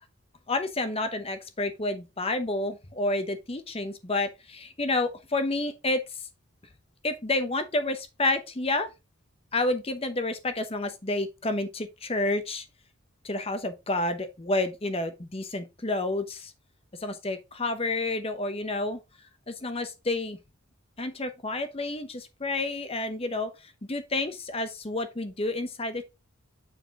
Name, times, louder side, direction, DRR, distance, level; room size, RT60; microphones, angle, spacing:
voice 1, 0.5-6.0 7.0-8.9 9.5-12.6 13.2-16.5 17.0-19.0 19.5-20.4 21.0-23.5 23.9-26.0, left 2 dB, 25° left, 0.8 m, -29 dB
7.2 x 4.3 x 3.6 m
head